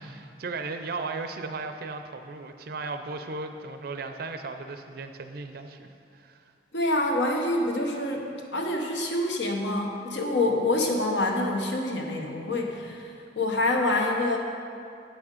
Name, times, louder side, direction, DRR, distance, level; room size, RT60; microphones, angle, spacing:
voice 1, 0.0-6.4, right 3 dB, 55° right, 7 dB, 0.5 m, -36 dB
voice 2, 6.7-13.1 13.4-14.4, left 2 dB, 70° left, 1 dB, 1.1 m, -26 dB
8.5 x 6.0 x 6.5 m, 2.4 s
head